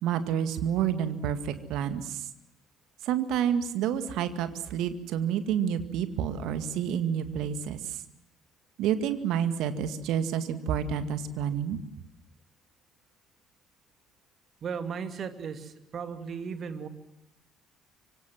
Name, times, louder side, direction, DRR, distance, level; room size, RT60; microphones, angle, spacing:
voice 1, 0.0-2.3 3.0-8.0 8.8-11.8, right 9 dB, 60° right, 10 dB, 2.1 m, -29 dB
voice 2, 14.6-16.9, right 6 dB, 45° right, 9 dB, 2.6 m, -36 dB
25.5 x 24.5 x 7.8 m, 0.86 s
figure-of-eight pair, 50°, 0 cm